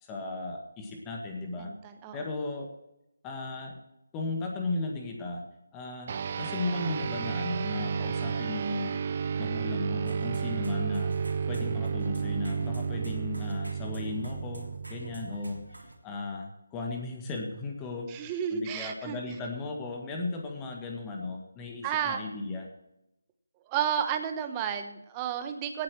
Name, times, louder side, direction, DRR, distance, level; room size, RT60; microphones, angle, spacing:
voice 1, 0.0-1.7 2.1-2.7 3.2-3.8 4.1-5.4 5.7-9.0 9.4-11.1 11.5-15.6 16.0-22.7, left 2 dB, 15° left, 2 dB, 1.9 m, -36 dB
voice 2, 1.6-2.2 18.1-19.2 21.8-22.2 23.7-25.8, right 8 dB, 15° right, 7 dB, 1.1 m, -32 dB
sound 1, 6.1-15.8, right 6 dB, 30° right, 0.6 m, -32 dB
sound 2, 10.1-15.9, right 1 dB, 75° right, 3.2 m, -47 dB
17.5 x 8.1 x 4.6 m, 0.87 s
figure-of-eight pair, 155°, 0 cm